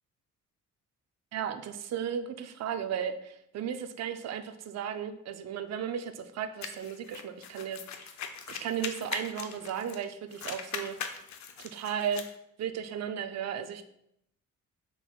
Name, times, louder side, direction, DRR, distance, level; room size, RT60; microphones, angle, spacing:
voice 1, 1.3-8.1 8.5-11.0 11.6-12.2 12.6-13.8, right 8 dB, 60° right, 8 dB, 0.5 m, -35 dB
sound 1, 6.6-10.0 10.3-12.3, left 7 dB, 65° left, 0.6 m, -40 dB
5.7 x 3.9 x 2.3 m, 0.76 s
cardioid pair, 90°, 30 cm